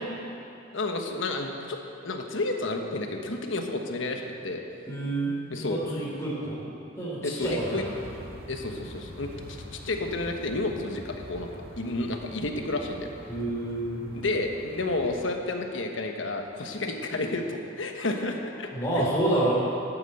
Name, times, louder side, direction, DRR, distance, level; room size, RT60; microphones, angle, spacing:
voice 1, 0.7-1.8 2.0-4.6 5.5-5.8 7.2-7.8 8.5-11.5 11.8-13.1 14.1-18.7 18.9-19.1, left 2 dB, 70° left, 3 dB, 1.3 m, -31 dB
voice 2, 4.9-6.6 7.0-7.8 13.3-14.1 18.7-19.5, right 1 dB, 15° left, -7 dB, 3.2 m, -28 dB
sound 1, 7.4-15.2, equal, 50° right, 2.0 m, -45 dB
12.0 x 9.1 x 7.8 m, 2.8 s
head